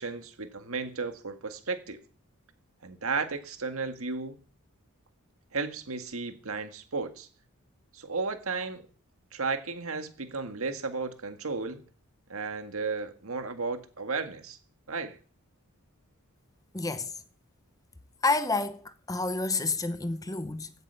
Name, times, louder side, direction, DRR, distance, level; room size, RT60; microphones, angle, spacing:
voice 1, 0.0-2.0 2.8-4.4 5.5-7.3 7.9-8.8 9.3-11.8 12.3-14.6 14.9-15.2, right 4 dB, 75° right, 1.8 m, -34 dB
voice 2, 16.7-17.2 18.2-20.7, left 3 dB, 15° left, 0.8 m, -29 dB
16.5 x 8.0 x 6.9 m
head